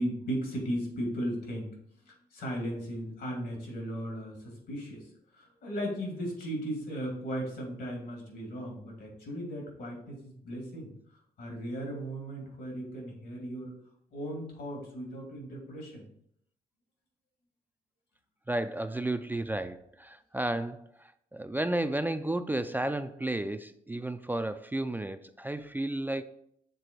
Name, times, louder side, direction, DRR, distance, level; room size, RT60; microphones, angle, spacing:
voice 1, 0.0-1.8 2.0-10.9 11.4-13.8 14.1-16.0, equal, 80° left, 0 dB, 2.6 m, -36 dB
voice 2, 18.5-26.2, right 1 dB, 10° right, 9 dB, 0.4 m, -32 dB
6.8 x 3.8 x 4.5 m, 0.70 s
cardioid pair, 75°, 17 cm